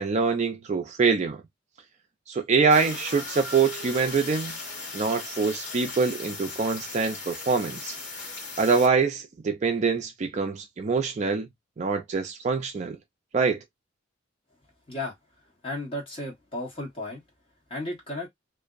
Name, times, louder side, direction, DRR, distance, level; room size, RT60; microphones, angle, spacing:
voice 1, 0.0-1.4 2.3-4.5 4.9-8.0 8.6-11.5 11.8-13.0 13.3-13.6, right 5 dB, 35° right, 0.4 m, -24 dB
sound 1, 2.7-8.9, left 3 dB, 60° left, 1.1 m, -37 dB
voice 2, 15.6-17.2 17.7-18.3, left 1 dB, 25° left, 1.1 m, -34 dB
2.5 x 2.0 x 2.3 m
head